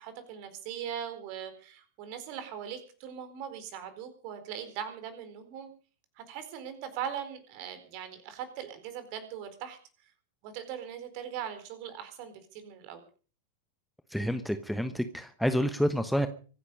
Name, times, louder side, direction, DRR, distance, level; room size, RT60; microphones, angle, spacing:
voice 1, 0.0-5.7 6.2-9.8 10.4-13.0, right 9 dB, 45° right, 10 dB, 4.3 m, -40 dB
voice 2, 14.1-16.3, equal, ahead, 9 dB, 1.1 m, -28 dB
24.5 x 10.0 x 5.4 m, 0.41 s
figure-of-eight pair, 90°, 0 cm